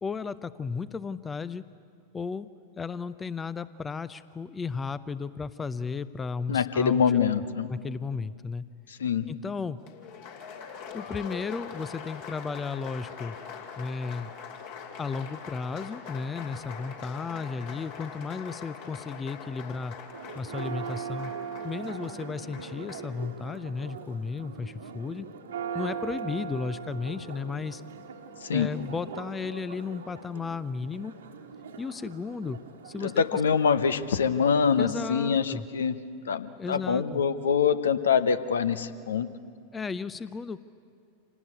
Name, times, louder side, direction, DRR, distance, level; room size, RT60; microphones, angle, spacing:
voice 1, 0.0-1.7 2.1-2.5 2.8-7.0 7.7-8.7 9.3-9.8 10.9-13.4 13.8-14.3 15.0-20.0 20.3-21.3 21.6-25.3 25.7-27.8 28.5-31.1 31.8-32.6 32.8-33.4 34.8-35.7 36.6-37.2 39.7-40.6, left 5 dB, 15° left, 17 dB, 0.5 m, -34 dB
voice 2, 6.5-7.7 8.9-9.3 28.4-28.7 33.0-36.0 36.3-39.3, left 6 dB, 65° left, 13 dB, 0.9 m, -25 dB
Applause, 9.8-23.1, left 6 dB, 50° left, 2.8 m, -43 dB
Church bell, 20.1-35.1, right 6 dB, 65° right, 1.5 m, -41 dB
26.5 x 18.0 x 9.6 m, 2.4 s
figure-of-eight pair, 90°, 0 cm